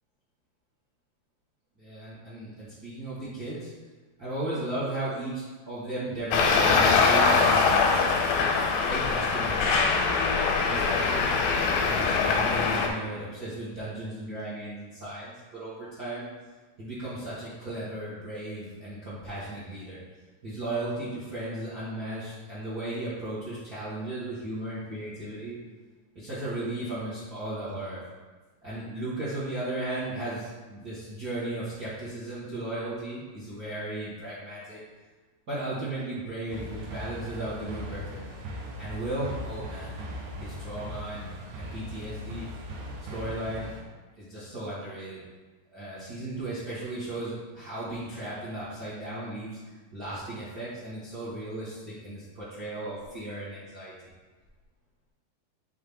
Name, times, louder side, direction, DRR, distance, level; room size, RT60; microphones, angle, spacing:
voice 1, 1.8-3.7 4.2-8.1 8.4-8.5 8.8-10.2 10.7-11.4 11.8-16.3 16.8-20.0 20.4-25.6 26.1-28.0 28.6-34.8 35.5-38.4 38.8-40.0 40.4-41.3 41.6-42.5 43.1-43.8 44.2-45.2 45.7-53.9, right 1 dB, 60° right, -10 dB, 0.9 m, -35 dB
Traffic noise roadway noise, 6.3-12.9, left 4 dB, 85° left, 2.8 m, -23 dB
sound 1, 36.5-43.8, equal, 75° right, 1.9 m, -39 dB
8.6 x 3.9 x 3.6 m, 1.3 s
omnidirectional pair, 4.8 m